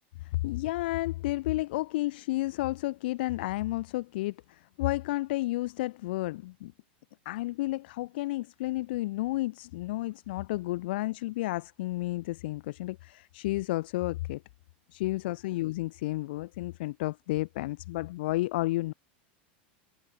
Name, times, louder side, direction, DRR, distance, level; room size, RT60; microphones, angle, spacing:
voice 1, 0.2-6.7 7.2-14.4 14.9-18.9, left 18 dB, 70° left, 6.1 m, -31 dB
supercardioid pair, 155°, 6 cm